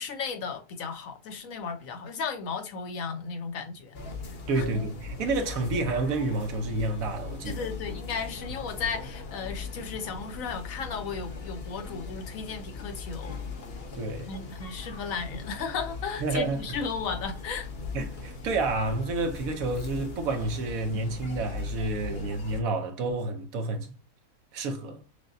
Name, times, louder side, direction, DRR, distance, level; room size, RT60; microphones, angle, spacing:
voice 1, 0.0-4.0 4.5-4.9 7.4-13.4 14.3-17.7 22.0-22.2, left 5 dB, 70° left, 1.0 m, -35 dB
sound 1, 3.9-22.6, left 4 dB, 50° left, 0.9 m, -39 dB
voice 2, 4.5-7.7 13.9-14.3 16.2-16.6 17.9-23.9 24.5-25.0, right 2 dB, 70° right, 1.2 m, -29 dB
6.2 x 2.2 x 2.6 m
omnidirectional pair, 1.6 m